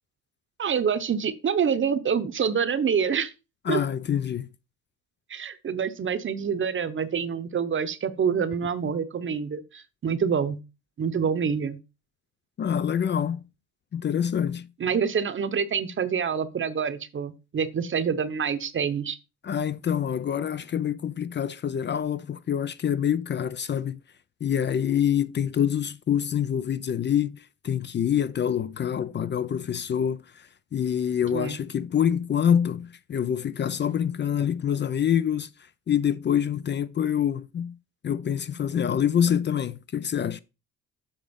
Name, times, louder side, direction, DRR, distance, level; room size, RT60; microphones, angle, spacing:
voice 1, 0.6-3.3 3.7-3.8 5.3-10.6 11.0-11.8 14.8-19.2 31.3-31.6, right 7 dB, 40° right, 0.8 m, -26 dB
voice 2, 3.7-4.5 12.6-13.4 13.9-14.7 19.4-24.0 24.4-27.4 27.6-30.2 30.7-35.5 35.9-37.7 38.0-40.4, left 9 dB, 35° left, 0.4 m, -26 dB
7.2 x 3.6 x 5.2 m
cardioid pair, 90°, 30 cm